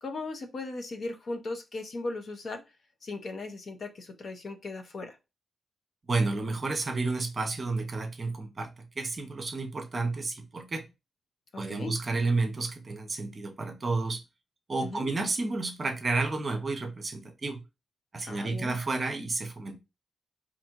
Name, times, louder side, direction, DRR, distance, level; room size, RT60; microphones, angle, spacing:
voice 1, 0.0-2.6 3.0-5.2 11.5-12.0 14.8-15.1 18.2-18.8, left 3 dB, 40° left, 0.6 m, -37 dB
voice 2, 6.1-10.8 11.6-14.2 14.7-17.6 18.1-19.8, right 3 dB, 30° right, 0.6 m, -31 dB
4.7 x 2.6 x 2.8 m
wide cardioid pair, 175°, 0 cm